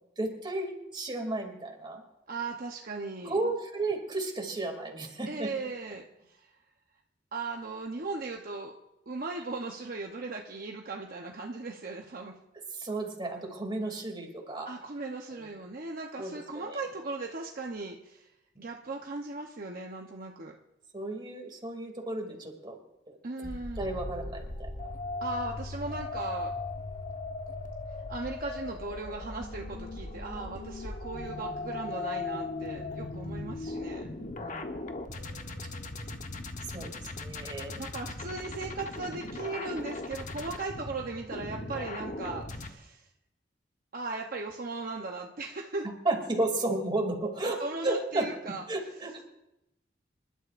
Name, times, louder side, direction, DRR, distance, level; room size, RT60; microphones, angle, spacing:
voice 1, 0.2-2.0 3.2-5.5 12.7-14.7 15.3-15.5 16.2-16.8 20.9-22.8 23.1-23.5 23.8-24.9 34.4-35.1 36.7-37.8 46.0-47.6 47.8-49.2, right 2 dB, 25° right, 2 dB, 2.8 m, -33 dB
voice 2, 2.3-3.4 5.2-6.6 7.3-8.7 9.1-12.3 14.7-18.3 18.6-20.6 23.2-23.9 25.2-26.5 28.1-34.0 37.7-43.1 43.9-45.9 47.4-48.6, right 3 dB, 55° right, 1 dB, 0.9 m, -38 dB
sound 1, 23.4-42.7, left 2 dB, 45° left, 1.1 m, -38 dB
sound 2, 23.8-27.1 27.5-27.6, right 1 dB, 10° right, 6.5 m, -52 dB
27.5 x 12.0 x 2.6 m, 0.90 s
head